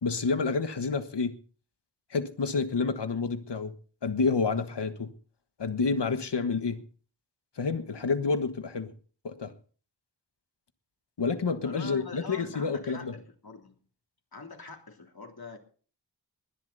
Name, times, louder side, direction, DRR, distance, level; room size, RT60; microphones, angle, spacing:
voice 1, 0.0-1.4 2.1-3.7 4.0-5.1 5.6-6.8 7.6-8.9 9.2-9.5 11.2-13.1, left 4 dB, 90° left, 1.5 m, -29 dB
voice 2, 11.6-13.8 14.3-15.6, left 3 dB, 60° left, 3.4 m, -44 dB
20.0 x 11.0 x 4.0 m
wide cardioid pair, 55°, 41 cm